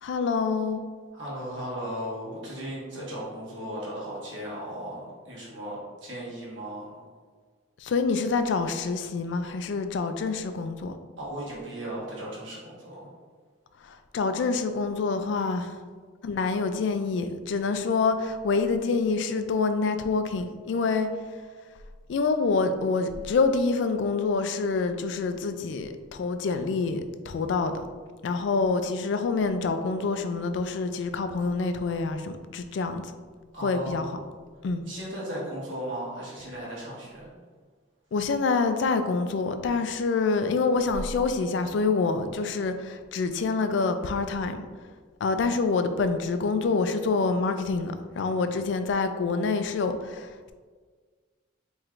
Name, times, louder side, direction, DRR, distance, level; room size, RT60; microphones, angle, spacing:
voice 1, 0.0-0.8 7.8-11.0 13.8-15.8 16.2-21.1 22.1-27.8 28.2-33.0 33.6-34.1 34.6-34.8 38.1-44.7 45.2-50.5, left 4 dB, 65° left, 8 dB, 0.3 m, -26 dB
voice 2, 1.1-7.0 11.2-13.1 33.5-34.3 34.8-37.3, right 1 dB, 70° right, -6 dB, 1.3 m, -36 dB
4.5 x 3.1 x 2.4 m, 1.5 s
head